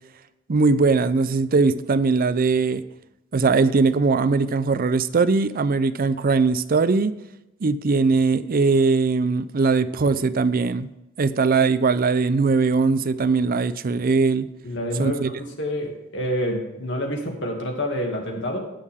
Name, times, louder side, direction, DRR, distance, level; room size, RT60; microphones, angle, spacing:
voice 1, 0.5-2.8 3.3-7.1 7.6-10.9 11.2-14.5 15.0-15.3, right 4 dB, 45° right, 14 dB, 0.5 m, -20 dB
voice 2, 14.6-18.6, equal, 65° left, 2 dB, 2.3 m, -28 dB
18.0 x 6.5 x 3.6 m, 0.92 s
head